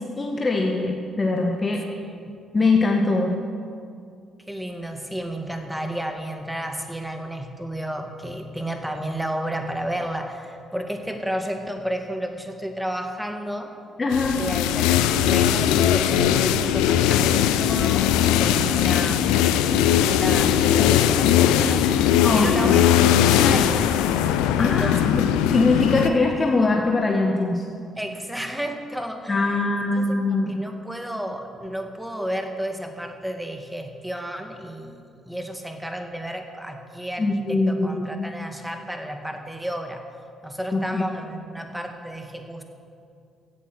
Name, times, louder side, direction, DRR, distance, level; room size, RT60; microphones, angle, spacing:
voice 1, 0.2-1.8 2.5-3.4 14.0-14.4 22.2-22.8 24.6-25.2 25.5-27.6 29.3-30.6 37.2-37.9 38.2-38.3 40.7-41.0, left 3 dB, 30° left, 1 dB, 1.6 m, -22 dB
voice 2, 4.5-13.7 14.4-22.0 22.3-23.9 24.5-25.4 28.0-40.0 40.4-42.6, equal, 5° right, 5 dB, 2.1 m, -32 dB
sound 1, 14.1-26.1, left 10 dB, 70° left, 0.6 m, -19 dB
16.0 x 11.5 x 6.2 m, 2.4 s
figure-of-eight pair, 45°, 0 cm